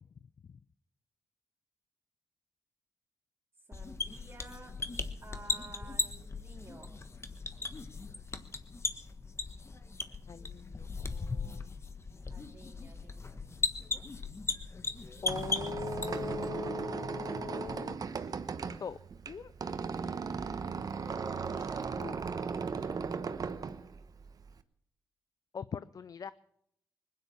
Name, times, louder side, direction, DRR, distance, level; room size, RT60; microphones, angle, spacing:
sound 1, 3.7-16.5, left 3 dB, 40° left, 1.4 m, -38 dB
voice 1, 3.7-4.7 5.2-7.1 12.3-13.4 20.9-22.9, right 3 dB, 40° right, -3 dB, 3.8 m, -51 dB
voice 2, 10.3-11.7 15.2-18.3 18.8-19.0 19.3-19.5 22.0-22.2 25.5-26.3, left 6 dB, 55° left, 16 dB, 0.5 m, -41 dB
Squeak, 15.0-24.6, right 5 dB, 60° right, 1.0 m, -37 dB
20.5 x 9.6 x 7.1 m, 0.77 s
cardioid pair, 55°, 7 cm